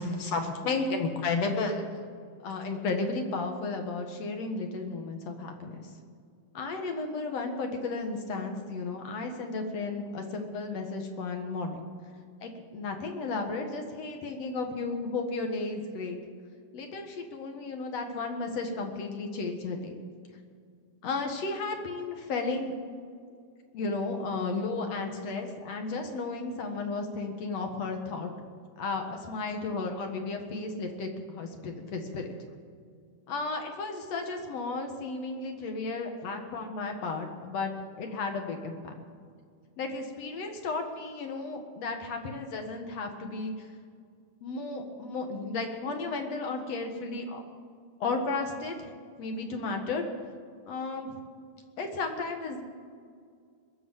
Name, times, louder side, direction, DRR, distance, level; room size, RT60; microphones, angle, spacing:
voice 1, 0.0-1.9 2.4-5.9 6.5-11.8 12.4-16.2 16.7-20.0 21.0-22.7 23.7-28.3 28.8-32.3 33.3-37.7 38.0-38.9 39.8-43.7 44.4-47.4 48.0-48.9 49.2-50.1 50.7-51.1 51.8-52.6, left 3 dB, 60° left, 4 dB, 2.6 m, -33 dB
21.0 x 7.2 x 9.0 m, 2.2 s
omnidirectional pair, 3.4 m